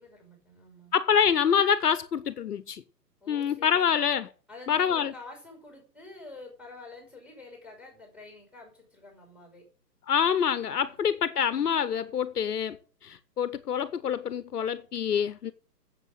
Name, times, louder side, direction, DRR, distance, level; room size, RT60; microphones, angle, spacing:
voice 1, 0.0-1.0 3.2-3.8 4.5-9.7 10.8-11.4, left 3 dB, ahead, 5.5 m, -48 dB
voice 2, 0.9-2.8 3.3-4.3 4.7-5.1 10.1-12.8 13.0-15.5, left 8 dB, 65° left, 1.0 m, -26 dB
8.2 x 7.7 x 8.4 m
hypercardioid pair, 135°, 49 cm